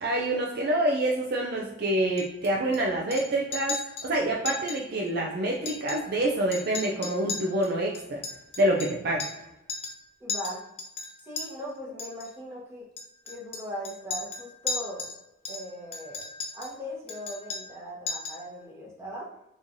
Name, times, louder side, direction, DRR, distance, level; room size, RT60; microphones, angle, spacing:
voice 1, 0.0-3.8 4.0-8.2 8.6-9.2, right 1 dB, 50° right, -1 dB, 0.4 m, -27 dB
Chink clink, 2.2-2.8 3.1-3.3 3.5-4.1 4.5-4.8 5.1-5.2 5.5-6.3 6.5-9.4 9.7-10.0 10.3-11.5 12.0-12.3 13.0-15.2 15.4-16.8 17.1-17.8 18.1-18.5, left 4 dB, 30° left, 0.4 m, -36 dB
voice 2, 10.2-10.7 11.2-12.9 13.2-15.1 15.5-16.3 16.5-19.3, equal, 15° right, -5 dB, 0.9 m, -39 dB
3.7 x 3.1 x 2.6 m, 0.90 s
head